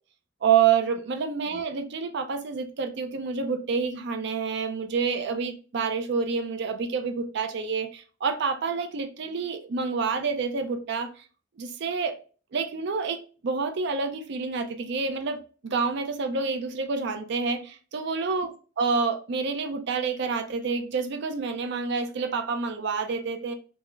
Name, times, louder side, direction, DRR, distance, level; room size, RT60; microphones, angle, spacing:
voice 1, 0.4-11.1 11.6-12.2 12.5-18.5 18.8-23.5, right 5 dB, 65° right, 0.5 m, -28 dB
3.5 x 2.0 x 3.1 m
head